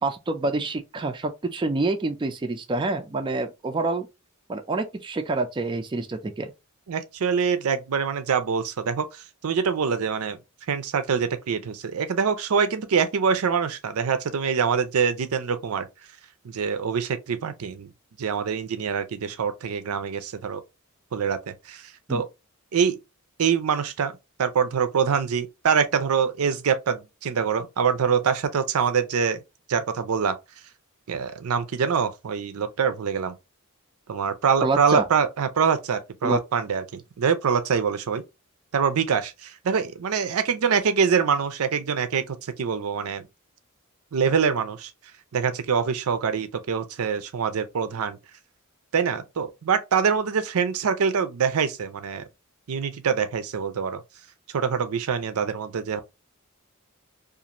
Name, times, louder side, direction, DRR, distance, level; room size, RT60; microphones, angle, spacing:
voice 1, 0.0-4.1 4.5-6.5 22.1-22.2 34.6-35.0 36.2-36.4, right 3 dB, 20° right, 0.4 m, -27 dB
voice 2, 6.9-10.4 10.7-15.9 16.4-17.9 18.2-20.6 21.1-21.4 21.7-21.8 22.1-22.3 22.7-23.0 23.4-24.1 24.4-29.4 29.7-30.4 31.1-33.4 34.1-38.2 38.7-43.2 44.1-44.9 45.3-48.2 48.9-52.2 52.7-54.0 54.5-56.0, right 6 dB, 80° right, 0.5 m, -24 dB
2.5 x 2.5 x 2.9 m
head